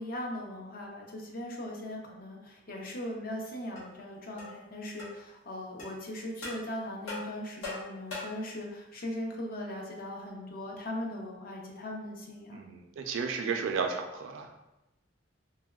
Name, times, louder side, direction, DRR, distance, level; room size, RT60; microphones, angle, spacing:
voice 1, 0.0-12.6 13.4-13.6, left 1 dB, 50° left, 0 dB, 0.5 m, -39 dB
sound 1, 3.8-3.9 4.4-4.6 5.0-5.1 5.8-5.9 6.4-6.6 7.1-8.5, left 2 dB, 80° left, 1.1 m, -40 dB
voice 2, 12.5-14.5, right 5 dB, 80° right, 4 dB, 0.4 m, -33 dB
3.4 x 2.1 x 2.2 m, 0.97 s
head